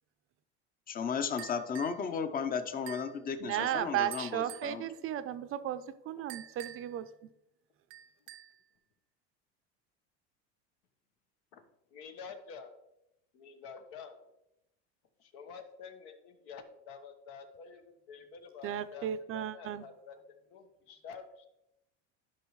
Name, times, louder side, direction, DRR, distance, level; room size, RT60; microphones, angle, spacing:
voice 1, 0.9-4.8, left 6 dB, 25° left, 10 dB, 0.8 m, -34 dB
sound 1, 1.4-2.0 2.9-3.2 4.1-4.8 6.3-7.0 7.9-8.6, right 13 dB, 85° right, 0.6 m, -48 dB
voice 2, 3.4-7.1 18.6-19.8, right 11 dB, 40° right, 12 dB, 0.6 m, -35 dB
voice 3, 11.9-12.8 13.3-14.2 15.2-20.2 20.5-21.5, left 6 dB, 70° left, 7 dB, 1.3 m, -49 dB
11.5 x 5.5 x 3.1 m, 0.85 s
supercardioid pair, 110°, 33 cm